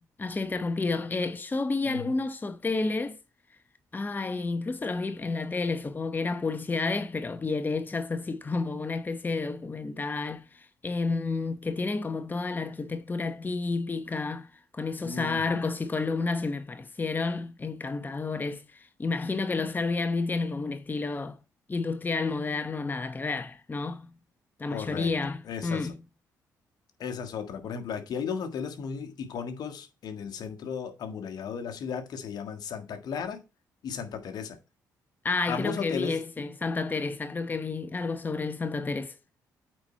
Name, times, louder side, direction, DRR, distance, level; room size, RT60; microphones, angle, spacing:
voice 1, 0.0-3.2 3.9-21.4 21.7-24.1 24.6-26.0 35.2-39.2, left 3 dB, 25° left, 0.9 m, -30 dB
voice 2, 15.0-15.6 24.7-25.1 25.4-25.9 27.0-33.4 33.8-34.6 35.5-36.2, left 6 dB, 70° left, 1.6 m, -35 dB
8.7 x 4.4 x 4.3 m
supercardioid pair, 65°, 7 cm